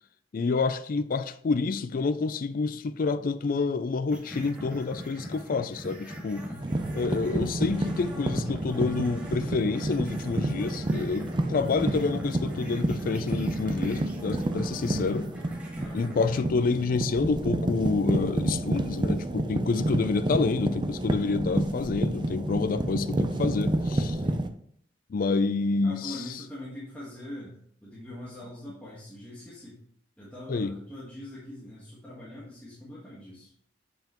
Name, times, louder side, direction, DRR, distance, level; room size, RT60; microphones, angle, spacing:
voice 1, 0.3-6.4 6.9-15.3 15.9-24.2 25.1-26.2 30.5-30.7, left 4 dB, 50° left, 0.4 m, -28 dB
sound 1, 4.1-16.4, equal, 10° right, 1.8 m, -41 dB
voice 2, 6.5-6.8 15.8-16.1 24.2-24.5 25.8-29.8 30.2-33.5, left 1 dB, 10° left, 1.4 m, -42 dB
sound 2, 6.6-24.5, right 1 dB, 25° right, 0.5 m, -30 dB
6.8 x 5.6 x 3.0 m
head